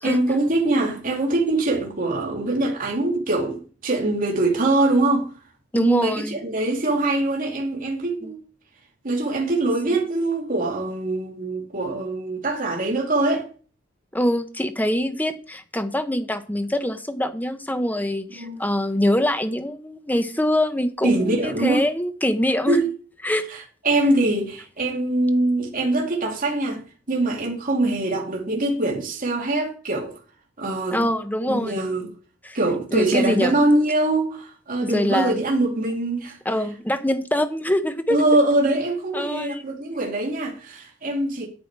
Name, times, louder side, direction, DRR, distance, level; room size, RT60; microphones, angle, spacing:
voice 1, 0.0-5.3 5.7-8.4 9.0-13.5 18.4-18.6 21.0-21.9 22.7-22.8 23.5-30.1 30.6-31.1 31.5-32.1 32.5-36.4 38.1-41.5, right 2 dB, 45° right, 2.4 m, -23 dB
voice 2, 5.7-6.4 8.2-8.3 14.1-22.8 23.2-23.4 30.9-31.8 32.4-32.6 32.9-33.5 34.8-35.4 36.4-38.2 39.1-39.6, left 1 dB, 10° left, 1.1 m, -24 dB
9.2 x 8.9 x 4.7 m
head